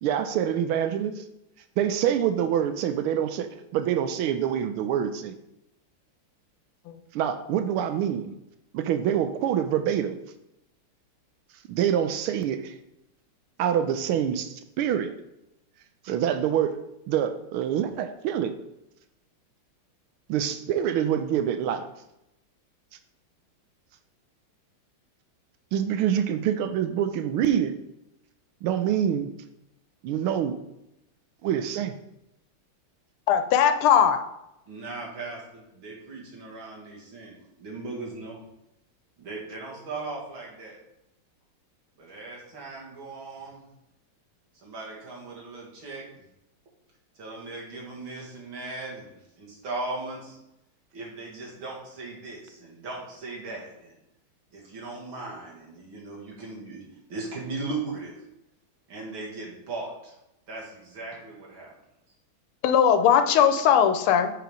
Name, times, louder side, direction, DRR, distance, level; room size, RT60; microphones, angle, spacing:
voice 1, 0.0-1.2 1.8-5.3 7.1-8.3 8.7-10.2 11.7-12.8 13.6-15.1 16.0-16.8 17.1-18.5 20.3-21.9 25.7-27.7 28.6-29.3 30.0-30.6 31.4-31.9, right 9 dB, 85° right, 9 dB, 1.5 m, -26 dB
voice 2, 33.3-34.2 62.6-64.3, left 8 dB, 85° left, 7 dB, 1.5 m, -19 dB
voice 3, 34.7-38.4 39.2-40.8 42.0-43.6 44.6-46.2 47.2-49.1 49.4-50.4 50.9-53.9 54.5-56.8 57.1-58.2 58.9-60.1 60.5-61.7, right 3 dB, 70° right, -3 dB, 2.7 m, -38 dB
7.8 x 4.9 x 5.1 m, 0.86 s
omnidirectional pair, 2.3 m